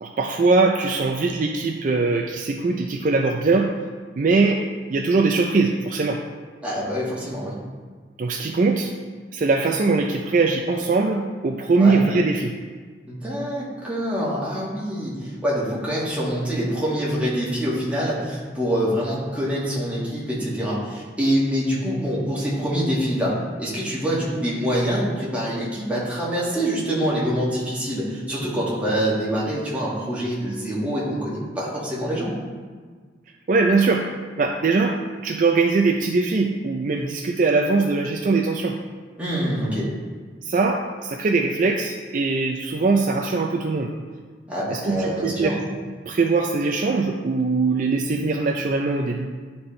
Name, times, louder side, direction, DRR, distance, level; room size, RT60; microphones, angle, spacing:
voice 1, 0.0-3.7 4.2-4.6 4.9-6.2 8.2-8.9 9.3-12.5 33.5-34.1 34.4-38.8 40.4-43.9 44.7-45.6 46.1-49.3, right 3 dB, 45° right, 2 dB, 0.4 m, -21 dB
voice 2, 6.6-7.5 11.8-12.0 13.1-32.3 39.2-39.9 44.5-45.6, equal, 5° right, -7 dB, 1.7 m, -25 dB
11.0 x 4.3 x 3.2 m, 1.5 s
head